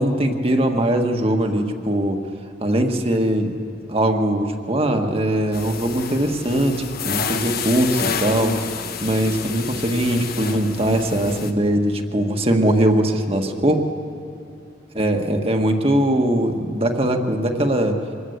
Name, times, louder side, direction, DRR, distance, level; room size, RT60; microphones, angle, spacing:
voice 1, 0.0-2.2 2.6-3.5 3.9-6.8 7.0-8.5 9.0-13.8 14.9-18.0, right 1 dB, 30° right, 4 dB, 1.6 m, -20 dB
sound 1, 5.5-11.5, left 5 dB, 55° left, 1.2 m, -29 dB
25.0 x 19.5 x 8.1 m, 2.5 s
head